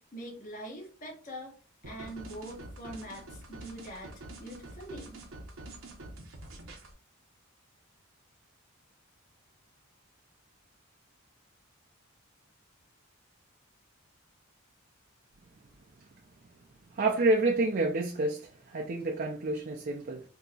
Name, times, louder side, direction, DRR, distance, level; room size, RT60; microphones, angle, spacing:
voice 1, 0.0-1.5 1.8-5.2, right 1 dB, 40° left, 1.1 m, -43 dB
sound 1, 1.8-6.9, right 2 dB, 65° right, 0.8 m, -46 dB
voice 2, 16.9-20.2, right 2 dB, 45° right, 0.4 m, -28 dB
3.9 x 2.8 x 2.3 m
head